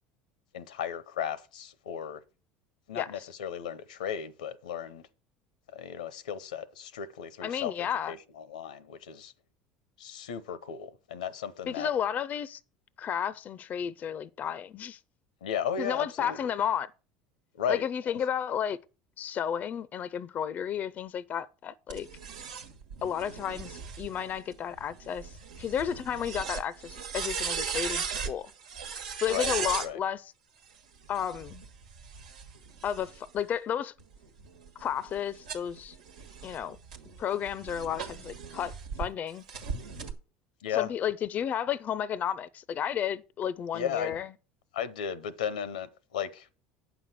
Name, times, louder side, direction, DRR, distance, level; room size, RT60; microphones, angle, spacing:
voice 1, 0.5-2.2 2.9-5.0 5.7-9.3 10.0-11.9 15.4-16.5 17.5-18.2 29.3-30.0 40.6-40.9 43.7-44.2 44.7-46.5, left 8 dB, 85° left, 0.8 m, -35 dB
voice 2, 7.4-8.1 11.7-12.6 13.0-15.0 15.8-16.9 17.7-18.8 19.2-22.1 23.0-28.5 29.2-30.2 31.1-31.6 32.8-33.9 34.8-36.0 36.4-36.8 37.2-39.4 40.7-44.3, left 9 dB, 40° left, 0.5 m, -32 dB
sound 1, 21.9-29.9 31.0-33.4 34.0-39.1 39.5-40.1, right 6 dB, 90° right, 1.5 m, -38 dB
9.0 x 6.1 x 6.1 m
hypercardioid pair, 80°, 4 cm